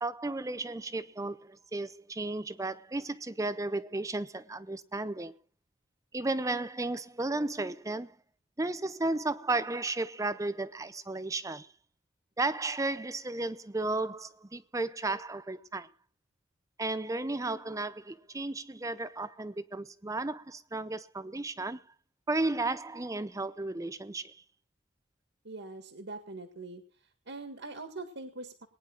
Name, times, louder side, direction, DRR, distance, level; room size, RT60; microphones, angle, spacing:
voice 1, 0.0-5.3 6.1-8.1 8.6-11.7 12.4-15.9 16.8-21.8 22.3-24.4, right 2 dB, 15° right, 0.6 m, -34 dB
voice 2, 25.4-26.8 27.3-28.7, right 3 dB, 65° right, 1.8 m, -42 dB
21.5 x 10.0 x 3.9 m
head